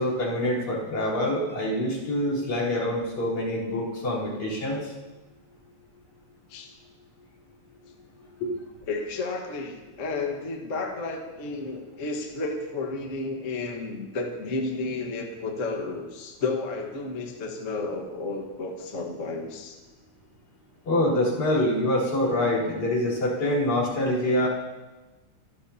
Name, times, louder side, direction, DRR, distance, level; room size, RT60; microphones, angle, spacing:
voice 1, 0.0-4.8 8.4-8.5 20.9-24.5, left 1 dB, 75° left, -4 dB, 5.3 m, -25 dB
voice 2, 8.9-19.8, left 3 dB, 35° left, 2 dB, 1.3 m, -32 dB
25.0 x 13.5 x 2.9 m, 1.2 s
omnidirectional pair, 3.4 m